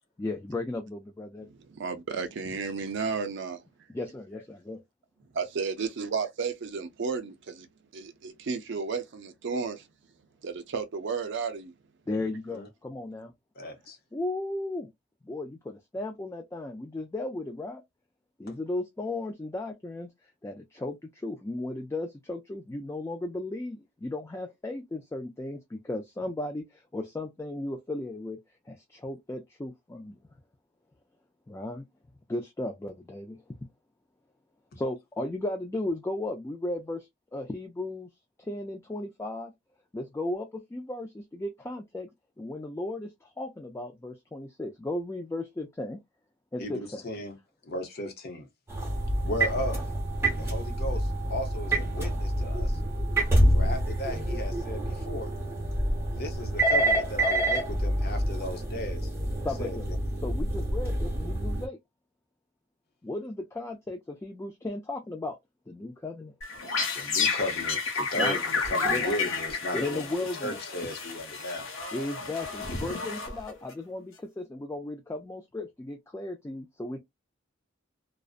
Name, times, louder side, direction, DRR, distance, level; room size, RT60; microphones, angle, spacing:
voice 1, 0.2-1.5 3.9-4.8 12.1-13.3 14.1-14.9 15.2-17.8 18.4-20.1 20.4-28.4 28.7-30.2 31.5-31.8 32.3-33.4 34.8-38.1 38.4-39.5 39.9-42.1 42.4-46.0 46.5-47.0 59.4-59.9 60.2-61.8 63.0-65.4 65.7-66.3 68.1-68.4 68.8-69.0 69.7-70.6 71.9-77.0, left 2 dB, 15° left, 0.3 m, -35 dB
voice 2, 1.4-3.6 5.3-7.7 7.9-9.8 10.4-11.7, right 5 dB, 65° right, 0.5 m, -33 dB
voice 3, 13.6-14.0 18.5-18.6 46.6-47.4 47.6-48.5 49.2-49.8 50.4-52.8 53.5-55.3 56.1-59.1 59.6-59.7 66.9-70.1 70.4-71.7, left 1 dB, 50° left, 0.7 m, -35 dB
sound 1, 48.7-61.7, right 1 dB, 15° right, 0.9 m, -27 dB
sound 2, 66.4-73.7, left 4 dB, 85° left, 0.9 m, -31 dB
2.5 x 2.0 x 2.4 m
head